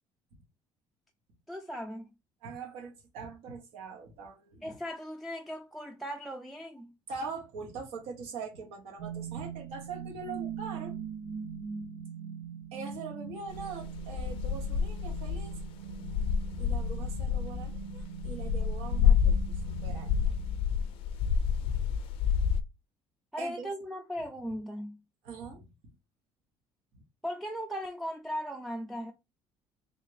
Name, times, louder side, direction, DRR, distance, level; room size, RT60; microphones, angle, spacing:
voice 1, 1.5-2.1 4.6-6.9 23.3-25.0 27.2-29.1, equal, ahead, 0.3 m, -38 dB
voice 2, 2.4-4.7 7.1-11.0 12.7-15.5 16.6-20.3 23.4-23.7 25.2-25.7 26.9-27.0, right 4 dB, 85° right, 1.1 m, -42 dB
sound 1, 9.0-21.0, right 8 dB, 60° right, 0.5 m, -42 dB
sound 2, 13.5-22.6, left 7 dB, 65° left, 0.4 m, -29 dB
3.5 x 2.4 x 3.2 m
cardioid pair, 145°, 10 cm